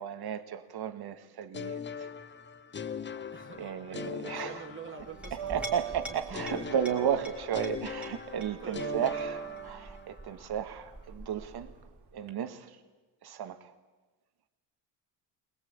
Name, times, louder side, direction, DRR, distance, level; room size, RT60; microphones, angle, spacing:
voice 1, 0.0-1.8 3.6-4.6 5.5-11.7 12.1-12.7 13.2-13.6, right 9 dB, 50° right, 1.9 m, -34 dB
sound 1, 1.5-5.5 6.3-10.2, left 7 dB, 25° left, 0.8 m, -41 dB
sound 2, 3.0-4.1 4.4-12.3, right 10 dB, 70° right, 2.9 m, -43 dB
voice 2, 3.3-6.7 7.6-7.9 8.6-9.2, right 5 dB, 25° right, 2.7 m, -46 dB
Chink clink, 5.0-12.1, equal, ahead, 3.6 m, -47 dB
21.0 x 20.0 x 8.8 m
cardioid pair, 100°, 47 cm